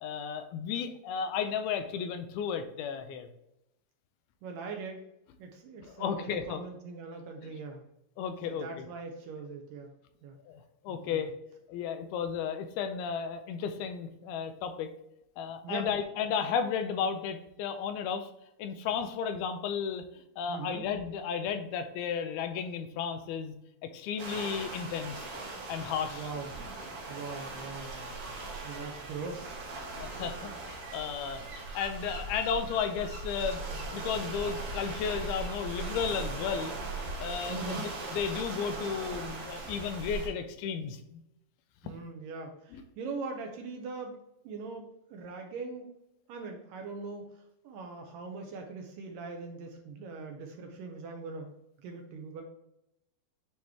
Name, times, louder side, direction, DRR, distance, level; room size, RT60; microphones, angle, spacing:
voice 1, 0.0-3.3 5.9-6.6 8.2-8.9 10.5-11.3 11.7-14.9 15.4-18.3 18.6-23.5 23.9-25.3 25.7-26.3 30.0-33.6 33.9-41.2 42.7-42.8, left 7 dB, 85° left, 8 dB, 2.5 m, -34 dB
voice 2, 4.4-5.0 5.4-7.9 8.5-9.9 10.2-10.4 10.9-11.3 15.6-15.9 20.5-20.9 26.1-26.6 27.1-28.3 28.6-29.5 37.5-37.9 41.8-44.2 44.4-45.9 46.3-51.5 51.8-52.4, right 4 dB, 75° right, 3 dB, 2.2 m, -41 dB
sound 1, 24.2-40.3, right 3 dB, 60° right, 1.6 m, -39 dB
8.9 x 3.1 x 3.5 m, 0.83 s
omnidirectional pair, 4.4 m